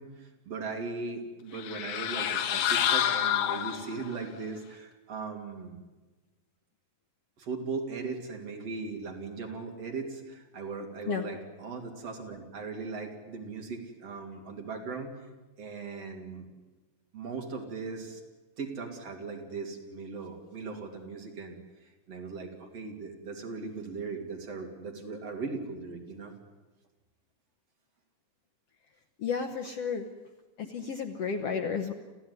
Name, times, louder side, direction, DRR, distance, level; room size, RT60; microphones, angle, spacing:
voice 1, 0.0-5.8 7.4-15.2 15.6-16.5 17.1-18.2 18.6-21.6 22.1-26.3, right 4 dB, 50° right, 2 dB, 3.7 m, -38 dB
sound 1, 1.5-4.2, left 10 dB, 80° left, 2.8 m, -28 dB
voice 2, 29.2-30.1 30.6-31.9, left 6 dB, 60° left, 6 dB, 1.7 m, -32 dB
28.0 x 15.0 x 9.7 m, 1.2 s
omnidirectional pair, 3.8 m